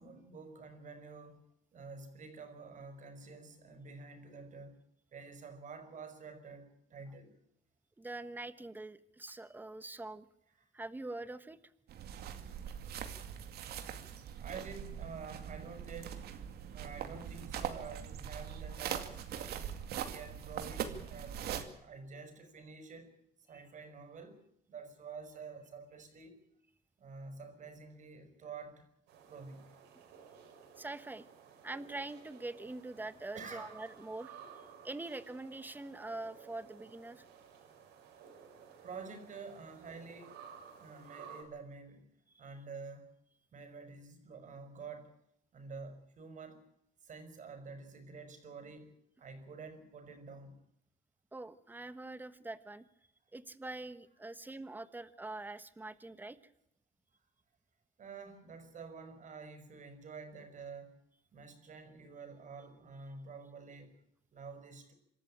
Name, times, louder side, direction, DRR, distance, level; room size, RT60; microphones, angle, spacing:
voice 1, 0.0-1.4 1.7-4.8 5.1-7.3 10.6-10.7 14.4-16.2 16.7-19.8 20.0-23.1 23.5-24.4 24.7-26.4 27.0-28.9 29.3-29.7 33.3-33.7 38.8-40.5 40.8-42.1 42.4-43.1 43.5-45.1 45.5-46.6 47.0-50.6 58.0-61.0 61.3-64.0 64.3-64.9, right 4 dB, 50° right, 8 dB, 5.5 m, -49 dB
voice 2, 8.0-10.3 10.7-11.6 23.5-23.6 30.8-31.2 31.6-37.2 42.3-42.5 51.3-52.9 53.3-56.4, right 2 dB, 10° right, 13 dB, 1.3 m, -44 dB
sound 1, 11.9-21.6, right 9 dB, 70° right, 2.4 m, -42 dB
sound 2, 29.1-41.4, right 7 dB, 90° right, 5.9 m, -55 dB
26.5 x 13.5 x 8.9 m, 0.79 s
cardioid pair, 110°, 17 cm